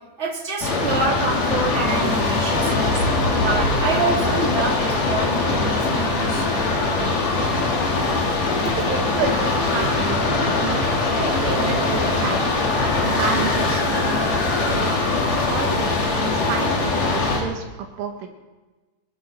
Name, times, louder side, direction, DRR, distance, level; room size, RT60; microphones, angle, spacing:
voice 1, 0.2-6.5, right 3 dB, 15° right, -3 dB, 3.0 m, -27 dB
sound 1, 0.6-17.4, left 3 dB, 50° left, 3.6 m, -21 dB
voice 2, 8.6-10.3 10.6-12.5 13.0-15.0 15.4-17.7 18.0-18.3, right 6 dB, 90° right, 3 dB, 4.2 m, -30 dB
25.0 x 13.0 x 4.4 m, 1.2 s
omnidirectional pair, 5.4 m